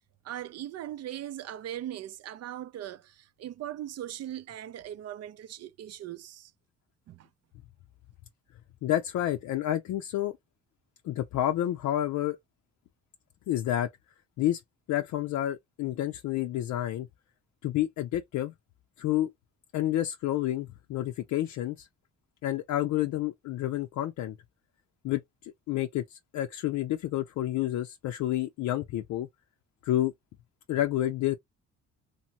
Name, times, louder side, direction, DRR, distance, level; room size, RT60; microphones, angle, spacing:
voice 1, 0.2-6.5 7.1-7.3, right 12 dB, 55° right, 0.4 m, -39 dB
voice 2, 8.8-10.4 11.0-12.4 13.5-13.9 14.4-14.6 14.9-17.1 17.6-18.5 19.0-19.3 19.7-21.9 22.4-24.4 25.0-29.3 29.8-30.1 30.7-31.3, left 13 dB, 70° left, 0.5 m, -29 dB
2.8 x 2.6 x 2.7 m
cardioid pair, 90°, 30 cm